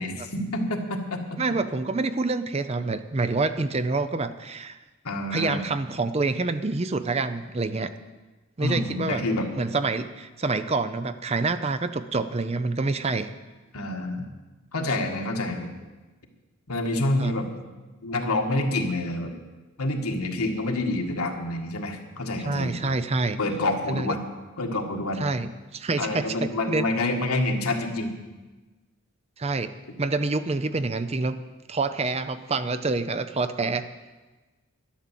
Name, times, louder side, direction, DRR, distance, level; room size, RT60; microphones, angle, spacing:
voice 1, 0.0-1.4 5.0-5.6 8.6-9.5 13.7-14.3 14.7-15.7 16.7-17.5 18.0-19.3 19.8-22.9 23.4-24.2 24.6-25.2 26.0-28.1, left 2 dB, 90° left, 3 dB, 1.8 m, -27 dB
voice 2, 1.4-4.8 5.3-7.9 8.6-9.2 9.6-13.3 17.2-17.3 22.5-23.4 23.9-24.2 25.2-26.9 29.4-31.4 31.7-33.8, right 3 dB, 30° right, 11 dB, 0.5 m, -27 dB
11.5 x 11.0 x 7.5 m, 1.2 s
head